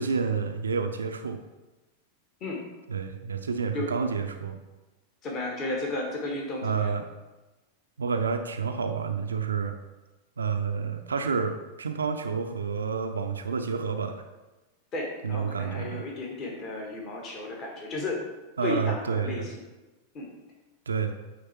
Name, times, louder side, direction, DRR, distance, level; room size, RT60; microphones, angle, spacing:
voice 1, 0.0-1.4 2.9-4.6 6.6-7.0 8.0-9.7 10.4-14.2 15.2-16.1 18.6-19.5 20.9-21.2, right 5 dB, 70° right, 7 dB, 0.4 m, -29 dB
voice 2, 5.2-7.0 14.9-18.2 18.6-19.6 20.1-20.3, left 2 dB, 35° left, -1 dB, 1.4 m, -33 dB
9.1 x 3.3 x 4.3 m, 1.1 s
figure-of-eight pair, 90°, 0 cm